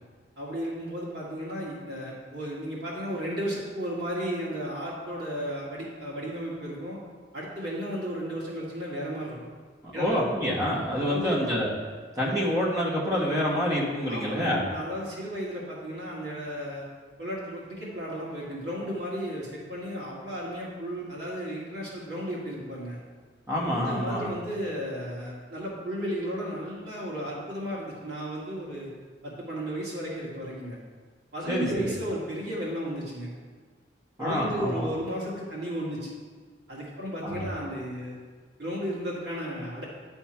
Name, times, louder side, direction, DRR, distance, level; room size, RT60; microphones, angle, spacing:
voice 1, 0.4-7.0 7.3-9.4 9.9-10.2 11.1-11.4 14.1-16.9 17.2-23.0 23.6-28.9 29.2-30.8 31.3-33.3 34.2-36.1 36.7-38.2 38.6-39.9, equal, 70° right, -6 dB, 2.1 m, -34 dB
voice 2, 9.9-11.7 12.1-14.6 23.5-24.3 31.5-31.9 34.2-34.9 37.2-37.5, equal, 20° right, -4 dB, 1.4 m, -27 dB
10.0 x 3.6 x 4.4 m, 1.5 s
head